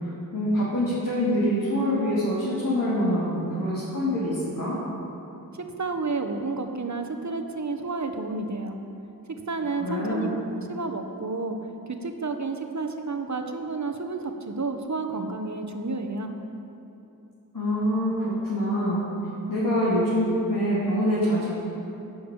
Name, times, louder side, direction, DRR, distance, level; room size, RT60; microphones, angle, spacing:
voice 1, 0.0-4.8 9.8-10.3 17.5-19.0 19.5-21.5, equal, 65° left, -9 dB, 3.1 m, -25 dB
voice 2, 5.5-8.7 9.5-10.3 10.7-11.6 11.9-16.3, right 3 dB, 50° right, 5 dB, 1.1 m, -31 dB
11.0 x 6.5 x 8.5 m, 2.9 s
wide cardioid pair, 50°, 36 cm